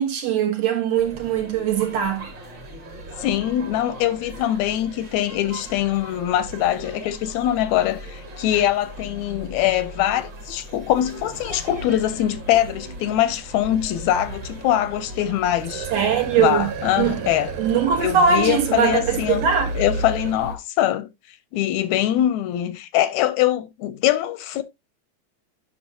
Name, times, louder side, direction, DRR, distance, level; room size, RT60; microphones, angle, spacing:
voice 1, 0.0-2.3 15.9-16.7 17.0-17.2 17.6-19.7, right 7 dB, 65° right, 2.4 m, -21 dB
alfalfa.binaural, 0.9-20.6, right 1 dB, 40° right, 2.4 m, -37 dB
voice 2, 3.2-15.9 16.4-17.5 18.0-19.5 19.8-21.1 21.5-24.6, left 12 dB, 80° left, 1.9 m, -23 dB
sound 1, 15.4-20.5, right 7 dB, 85° right, 2.3 m, -34 dB
8.7 x 5.7 x 2.7 m
omnidirectional pair, 3.4 m